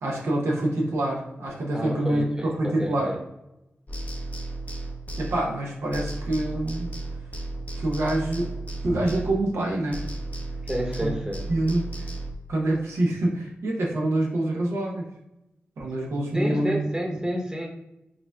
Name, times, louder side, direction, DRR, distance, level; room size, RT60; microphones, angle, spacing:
voice 1, 0.0-3.1 5.2-6.9 7.7-8.5 8.8-10.0 11.0-11.1 11.5-12.1 12.5-15.1 15.8-16.8, right 1 dB, 85° right, -2 dB, 0.7 m, -26 dB
voice 2, 1.7-3.2 10.7-11.5 16.3-17.7, equal, 15° right, 0 dB, 0.9 m, -30 dB
sound 1, 3.9-5.7 5.9-9.7 9.9-12.3, right 2 dB, 35° left, 0.6 m, -34 dB
4.8 x 2.3 x 2.2 m, 0.88 s
cardioid pair, 45°, 4 cm